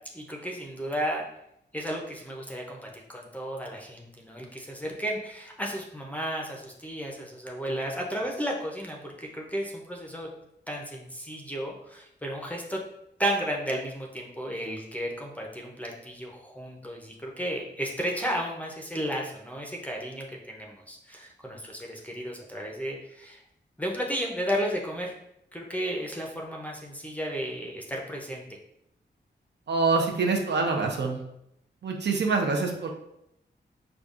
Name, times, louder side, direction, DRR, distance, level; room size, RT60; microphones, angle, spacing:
voice 1, 0.1-1.2 1.7-10.3 10.7-12.8 13.2-23.4 23.8-25.1 25.5-28.4, equal, 10° left, -1 dB, 0.5 m, -33 dB
voice 2, 29.7-31.2 31.8-32.9, right 4 dB, 65° right, 1 dB, 0.6 m, -25 dB
5.0 x 2.3 x 2.4 m, 0.79 s
wide cardioid pair, 120°, 19 cm